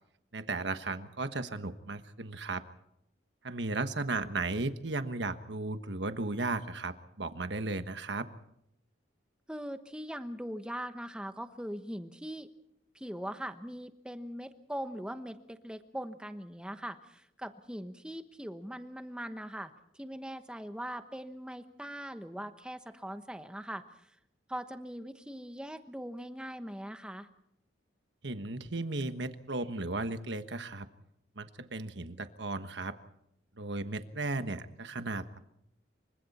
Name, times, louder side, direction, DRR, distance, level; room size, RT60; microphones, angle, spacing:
voice 1, 0.3-2.6 3.4-8.3 28.2-30.9 31.4-32.9 33.6-35.4, right 2 dB, 70° right, 9 dB, 1.4 m, -35 dB
voice 2, 9.5-12.5 12.9-24.1 24.5-27.3, equal, 5° right, 9 dB, 1.1 m, -41 dB
27.5 x 24.5 x 4.3 m, 0.78 s
head